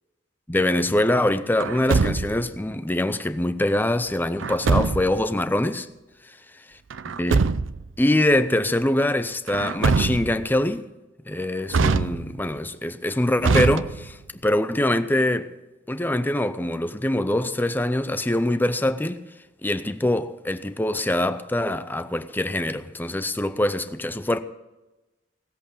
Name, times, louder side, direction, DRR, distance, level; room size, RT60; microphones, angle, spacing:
voice 1, 0.5-5.9 7.1-7.5 8.0-10.9 11.3-14.2 14.4-15.5 15.9-19.2 19.6-24.4, left 1 dB, 10° left, 0.6 m, -24 dB
Truck, 1.6-2.6 4.4-5.2 6.9-7.9 9.5-10.5 11.7-12.5 13.4-14.3, right 4 dB, 90° right, 0.5 m, -23 dB
17.0 x 8.0 x 6.8 m
head